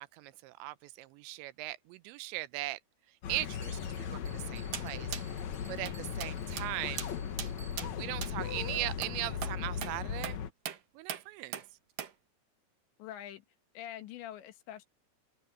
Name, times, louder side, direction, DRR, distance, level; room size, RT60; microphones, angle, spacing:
voice 1, 0.0-2.8 3.3-5.1 5.7-7.0 7.8-10.4 10.9-11.6, right 18 dB, 85° right, 3.0 m, -39 dB
sound 1, 3.2-10.5, left 7 dB, 60° left, 1.9 m, -38 dB
Bell, 3.6-8.1, right 5 dB, 5° right, 7.6 m, -58 dB
sound 2, 4.7-4.9 5.1-5.3 5.9-6.0 6.2-6.3 6.6-6.7 7.0-7.1 7.4-7.5 7.8-7.9 8.2-8.3 9.0-9.1 9.4-9.6 9.8-9.9 10.2-10.4 10.7-10.8 11.1-11.2 11.5-11.7 12.0-12.1, right 9 dB, 55° right, 2.9 m, -39 dB
voice 2, 13.0-13.5 13.8-14.9, left 11 dB, 80° left, 3.8 m, -44 dB
open air
omnidirectional pair, 5.1 m